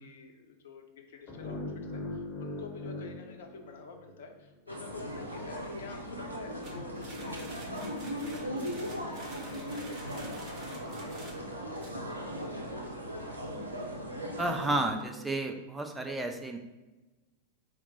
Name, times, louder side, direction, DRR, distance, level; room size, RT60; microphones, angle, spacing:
voice 1, 0.0-1.6 1.9-13.5, left 5 dB, 60° left, 4 dB, 0.6 m, -49 dB
sound 1, 1.3-4.3, left 2 dB, 30° left, 0.9 m, -40 dB
sound 2, 4.7-14.8, equal, 85° right, 0.6 m, -38 dB
sound 3, 6.6-11.9, right 2 dB, 35° right, 0.8 m, -49 dB
voice 2, 14.4-16.6, right 2 dB, 10° right, 4 dB, 0.5 m, -32 dB
4.2 x 2.0 x 4.2 m, 1.1 s
figure-of-eight pair, 90°, 0 cm